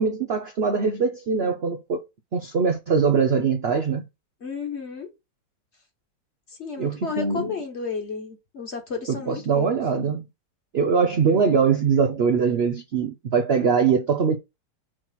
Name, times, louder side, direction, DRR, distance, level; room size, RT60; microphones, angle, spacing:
voice 1, 0.0-2.0 2.3-4.0 6.8-7.5 9.1-10.2 10.7-14.4, right 5 dB, 80° right, 0.5 m, -22 dB
voice 2, 4.4-5.1 6.6-9.8, left 5 dB, 40° left, 1.5 m, -32 dB
6.3 x 3.1 x 5.8 m
omnidirectional pair, 2.0 m